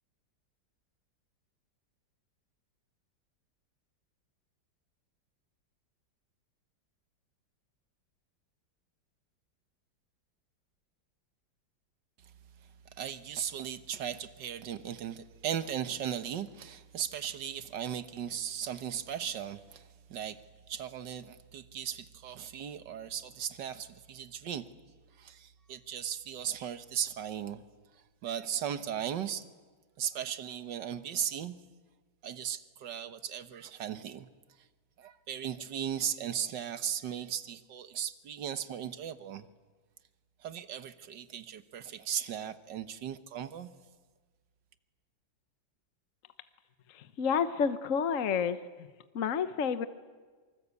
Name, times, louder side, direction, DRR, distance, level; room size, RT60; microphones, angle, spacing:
voice 1, 12.9-20.4 20.7-24.7 25.2-27.6 28.2-29.5 30.0-31.6 32.2-34.3 35.0-39.5 40.4-43.7, right 9 dB, 70° right, 1.7 m, -37 dB
voice 2, 46.9-48.9 49.1-49.9, left 6 dB, 50° left, 1.2 m, -30 dB
26.0 x 24.5 x 8.3 m
omnidirectional pair, 2.0 m